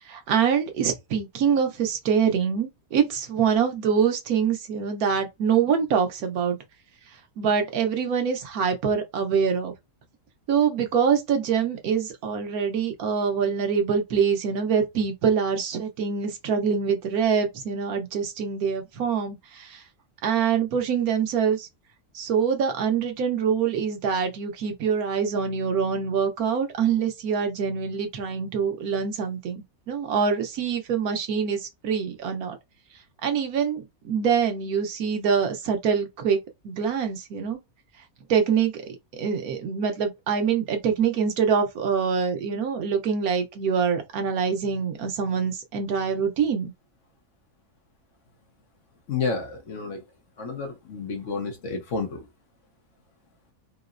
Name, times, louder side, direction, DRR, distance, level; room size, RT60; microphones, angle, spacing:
voice 1, 0.1-6.6 7.4-9.7 10.5-19.8 20.2-21.7 22.1-32.6 33.2-36.4 36.6-37.6 38.3-38.8 39.1-46.7, right 6 dB, 85° right, 1.3 m, -25 dB
voice 2, 49.1-50.0 50.4-52.3, left 4 dB, 60° left, 1.1 m, -30 dB
3.7 x 2.0 x 2.5 m
omnidirectional pair, 1.5 m